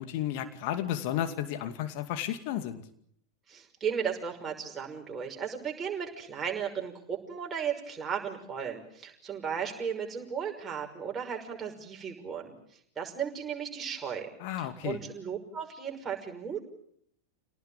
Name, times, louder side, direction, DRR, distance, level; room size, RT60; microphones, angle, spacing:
voice 1, 0.0-2.8 14.4-15.0, left 11 dB, 45° left, 9 dB, 2.4 m, -33 dB
voice 2, 3.5-12.5 13.0-14.3 14.6-16.6, right 7 dB, 20° right, 1 dB, 5.9 m, -35 dB
28.5 x 18.5 x 9.0 m, 0.68 s
figure-of-eight pair, 90°, 0 cm